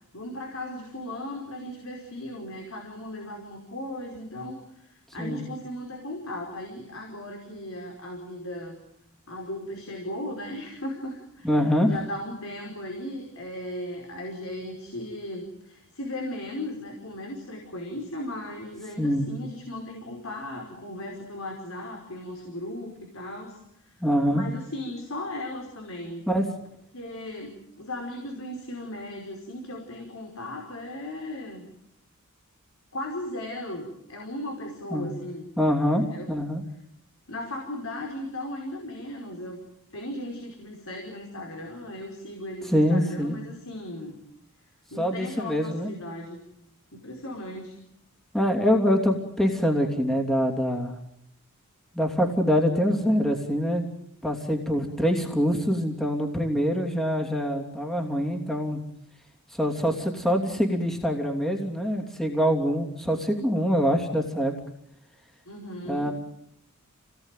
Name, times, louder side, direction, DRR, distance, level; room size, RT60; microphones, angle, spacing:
voice 1, 0.1-8.8 9.3-11.5 11.9-23.6 24.3-26.3 26.9-31.7 32.9-35.5 35.8-36.3 37.3-39.6 39.9-44.2 44.9-46.4 46.9-47.8 65.4-66.1, left 1 dB, 70° left, 2 dB, 5.1 m, -37 dB
voice 2, 11.4-11.9 19.0-19.3 24.0-24.4 26.3-26.5 34.9-35.1 35.6-36.6 42.6-43.4 45.0-45.9 48.3-51.0 51.9-53.9 54.2-58.8 59.5-64.5 65.9-66.1, equal, ahead, 1 dB, 2.9 m, -24 dB
29.5 x 19.0 x 9.2 m, 0.78 s
head